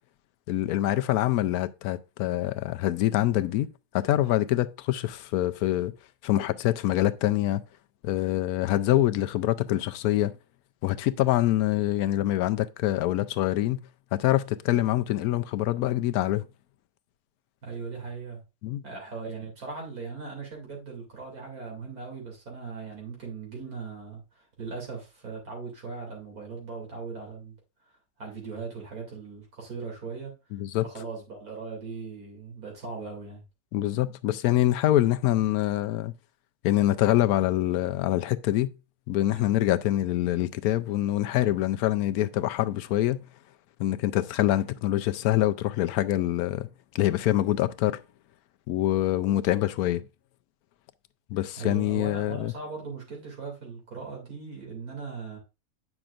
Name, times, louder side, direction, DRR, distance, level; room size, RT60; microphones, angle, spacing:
voice 1, 0.5-3.7 3.9-5.9 6.2-7.6 8.0-10.3 10.8-13.8 14.1-16.5 18.6-18.8 30.5-30.8 33.7-36.1 36.6-38.7 39.1-43.2 43.8-46.7 46.9-48.0 48.7-50.0 51.3-52.5, left 14 dB, 90° left, 1.1 m, -25 dB
voice 2, 17.6-18.4 18.8-27.5 28.2-30.3 30.8-33.4 39.3-39.5 51.6-55.4, right 4 dB, 80° right, 3.1 m, -39 dB
8.9 x 6.1 x 2.4 m
omnidirectional pair, 1.5 m